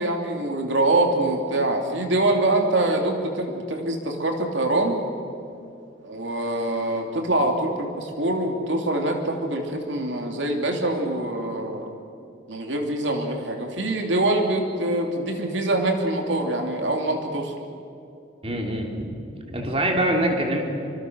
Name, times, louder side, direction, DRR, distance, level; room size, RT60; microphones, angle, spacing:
voice 1, 0.0-5.0 6.0-11.9 12.5-17.5, right 2 dB, 80° right, 3 dB, 3.0 m, -24 dB
voice 2, 18.4-19.1 19.5-20.6, right 1 dB, 30° right, 1 dB, 3.2 m, -24 dB
27.5 x 25.5 x 6.4 m, 2.6 s
head